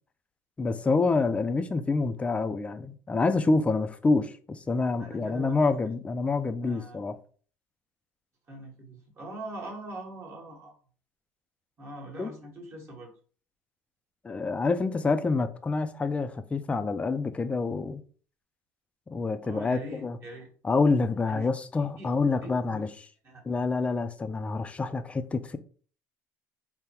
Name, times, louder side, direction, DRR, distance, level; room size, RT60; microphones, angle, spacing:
voice 1, 0.6-7.1 12.2-12.3 14.2-18.0 19.1-20.2 20.6-22.9 23.4-25.6, left 3 dB, 15° left, 0.4 m, -27 dB
voice 2, 5.0-5.6 6.6-7.0 8.5-10.7 11.8-13.1 19.4-20.5 21.3-21.5 22.0-22.1 22.4-22.9 23.2-23.4, right 1 dB, 35° right, 1.3 m, -42 dB
3.8 x 2.2 x 4.3 m
supercardioid pair, 105°, 7 cm